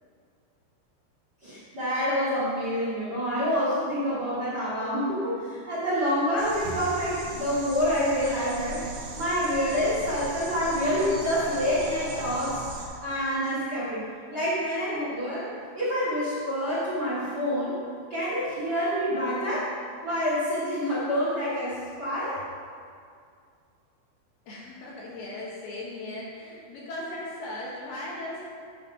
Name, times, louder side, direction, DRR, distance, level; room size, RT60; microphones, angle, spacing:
voice 1, 1.4-8.9 9.2-15.5 15.7-17.8 18.1-19.7 20.0-22.4, equal, 30° right, -10 dB, 2.4 m, -27 dB
sound 1, 6.4-12.9, right 2 dB, 65° right, 3.1 m, -38 dB
voice 2, 24.5-28.4, left 1 dB, 70° left, -5 dB, 2.8 m, -37 dB
9.9 x 5.4 x 6.3 m, 2.3 s
omnidirectional pair, 5.3 m